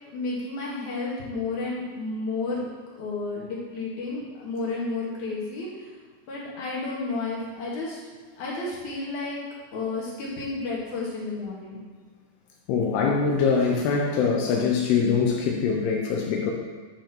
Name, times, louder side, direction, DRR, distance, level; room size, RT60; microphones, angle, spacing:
voice 1, 0.0-2.6 2.9-5.9 6.3-8.0 8.4-9.4 9.7-11.8, left 3 dB, 55° left, -5 dB, 2.8 m, -31 dB
voice 2, 12.7-16.5, left 5 dB, 80° left, 0 dB, 2.7 m, -23 dB
10.5 x 5.3 x 4.4 m, 1.5 s
omnidirectional pair, 4.8 m